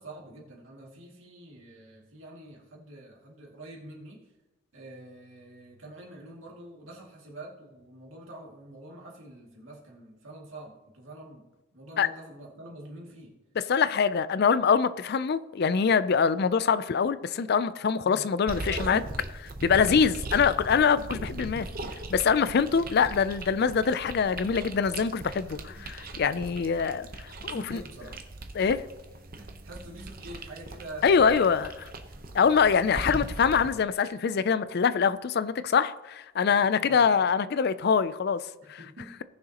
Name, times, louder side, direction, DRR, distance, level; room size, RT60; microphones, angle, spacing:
voice 1, 0.0-4.2 4.7-11.5 11.7-13.4 18.0-18.3 18.6-19.2 21.5-21.7 25.3-25.9 27.5-28.2 29.4-31.1 32.3-32.5 36.8-37.1 38.6-39.2, right 1 dB, 65° right, 2.4 m, -46 dB
voice 2, 13.6-19.0 19.6-21.7 22.1-27.1 27.4-27.8 28.5-28.8 31.0-31.9 32.3-38.4 38.7-38.8, left 6 dB, 50° left, 0.4 m, -24 dB
sound 1, 18.5-33.7, right 2 dB, 40° right, 0.9 m, -39 dB
18.5 x 6.4 x 2.9 m
head